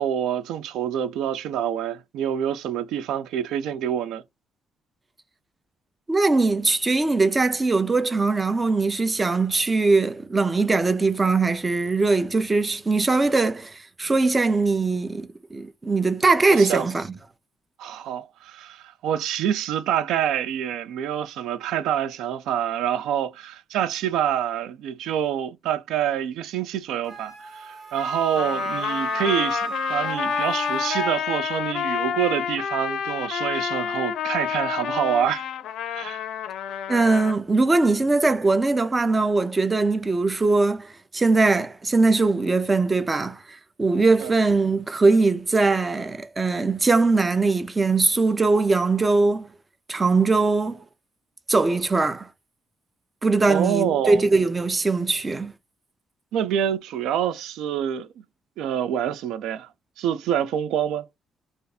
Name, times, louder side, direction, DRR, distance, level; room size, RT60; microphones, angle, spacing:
voice 1, 0.0-4.2 16.6-16.9 17.8-35.5 35.9-36.2 44.2-44.3 53.5-54.2 56.3-58.1 58.6-59.7 60.0-61.1, right 9 dB, 90° right, 0.3 m, -26 dB
voice 2, 6.1-17.1 36.9-49.5 49.9-50.8 51.5-52.3 53.2-55.5, right 3 dB, 25° right, 0.5 m, -21 dB
Wind instrument woodwind instrument, 27.1-31.1, right 3 dB, 50° right, 1.2 m, -32 dB
Trumpet, 28.4-37.4, left 8 dB, 75° left, 0.4 m, -29 dB
2.6 x 2.4 x 4.0 m
cardioid pair, 90°, 0 cm